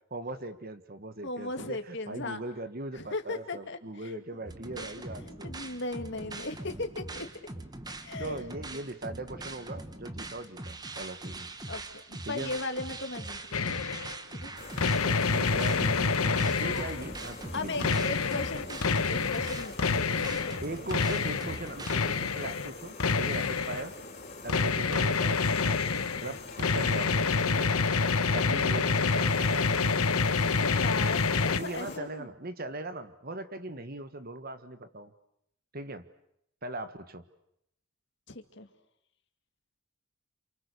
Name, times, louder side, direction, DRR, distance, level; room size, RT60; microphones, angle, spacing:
voice 1, 0.1-5.5 8.2-11.5 12.2-12.5 15.0-18.2 20.6-23.9 24.4-25.9 26.2-27.7 28.3-30.2 31.6-35.1 35.7-36.0 36.6-37.2, right 2 dB, 45° right, 11 dB, 1.4 m, -40 dB
voice 2, 1.2-2.4 2.9-4.2 4.7-4.9 5.2-7.3 8.0-8.4 11.7-11.8 12.1-13.8 14.3-14.5 17.5-20.6 28.5-28.9 30.6-32.3 38.3-38.7, left 2 dB, 55° left, 7 dB, 2.4 m, -37 dB
sound 1, 4.5-22.0, right 2 dB, 20° right, 1.3 m, -42 dB
sound 2, 13.5-14.1 14.8-17.1 17.8-20.6 20.9-22.7 23.0-23.8 24.5-31.6, left 4 dB, 85° left, 1.3 m, -27 dB
sound 3, 14.6-32.0, left 3 dB, 35° left, 4.9 m, -45 dB
29.0 x 28.0 x 6.8 m, 0.76 s
head